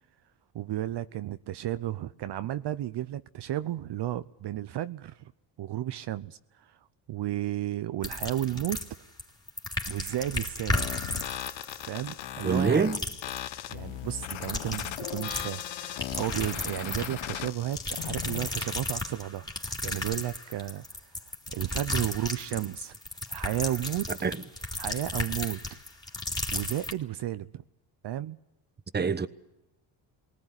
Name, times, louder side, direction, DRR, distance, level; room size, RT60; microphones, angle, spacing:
voice 1, 0.5-5.3 5.6-6.8 7.1-8.8 9.9-10.9 11.9-12.9 13.7-20.9 21.5-22.9 23.3-24.1 24.8-25.6 26.5-27.6 28.0-28.4, right 13 dB, 60° right, 0.8 m, -33 dB
sound 1, 8.0-9.2 9.5-12.7 12.9-13.4 14.2-15.7 16.0-17.3 17.7-26.9, left 1 dB, 10° left, 3.2 m, -34 dB
sound 2, 10.7-18.7, left 13 dB, 75° left, 1.0 m, -38 dB
voice 2, 12.4-13.0 24.1-24.4 28.9-29.3, right 5 dB, 20° right, 1.1 m, -25 dB
19.5 x 19.0 x 9.8 m
cardioid pair, 80°, 47 cm